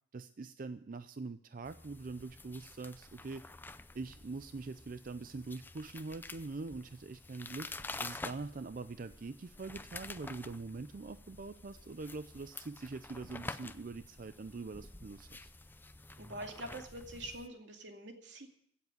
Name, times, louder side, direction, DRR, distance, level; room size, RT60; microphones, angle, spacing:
voice 1, 0.1-3.4 3.9-7.7 8.0-15.5, right 3 dB, 50° right, 11 dB, 0.5 m, -43 dB
sound 1, 1.6-17.5, left 2 dB, 10° left, 0.5 m, -49 dB
voice 2, 16.2-18.5, right 1 dB, 85° right, 4 dB, 2.4 m, -45 dB
16.0 x 7.3 x 9.2 m, 0.69 s
head